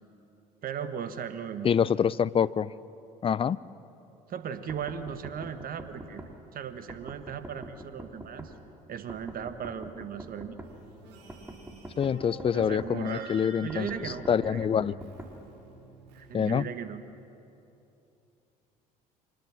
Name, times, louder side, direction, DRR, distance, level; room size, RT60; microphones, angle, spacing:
voice 1, 0.6-1.7 4.3-6.2 6.5-8.6 8.9-10.6 12.5-13.3 13.6-15.0 16.1-17.0, right 8 dB, 45° right, 10 dB, 1.5 m, -37 dB
voice 2, 1.6-2.7 3.2-3.6 12.0-15.0 16.3-16.7, left 7 dB, 25° left, 19 dB, 0.5 m, -26 dB
sound 1, 4.7-6.3 6.9-8.5 9.1-10.7 11.3-12.9 13.7-15.3, right 1 dB, 10° right, 3.0 m, -44 dB
sound 2, 10.6-16.2, right 1 dB, 65° right, 6.8 m, -47 dB
24.0 x 19.5 x 7.4 m, 2.9 s
figure-of-eight pair, 55°, 21 cm